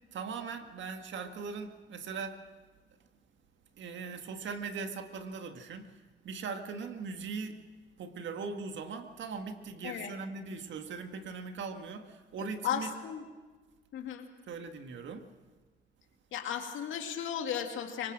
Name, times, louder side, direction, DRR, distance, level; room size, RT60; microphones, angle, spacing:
voice 1, 0.1-2.4 3.8-5.9 6.2-7.6 8.0-12.9 14.5-15.2, right 5 dB, 70° right, 7 dB, 1.8 m, -40 dB
voice 2, 9.8-10.2 12.4-13.2 13.9-14.3 16.3-18.1, left 9 dB, 80° left, 5 dB, 2.3 m, -35 dB
23.5 x 19.5 x 6.3 m, 1.3 s
cardioid pair, 90°, 20 cm